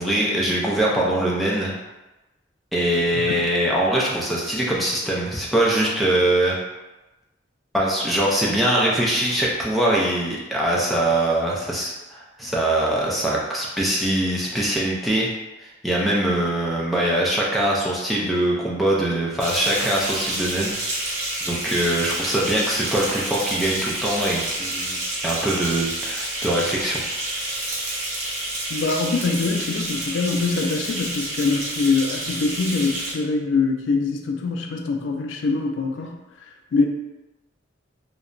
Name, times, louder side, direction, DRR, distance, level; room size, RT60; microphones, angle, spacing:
voice 1, 0.0-1.7 2.7-6.6 7.7-15.3 15.6-20.7 21.4-27.0, right 1 dB, ahead, -5 dB, 0.4 m, -22 dB
sound 1, 19.4-33.1, right 1 dB, 40° right, 0.6 m, -29 dB
voice 2, 28.7-36.2 36.7-36.9, left 4 dB, 80° left, 3 dB, 0.3 m, -24 dB
2.8 x 2.1 x 2.5 m, 1.0 s
head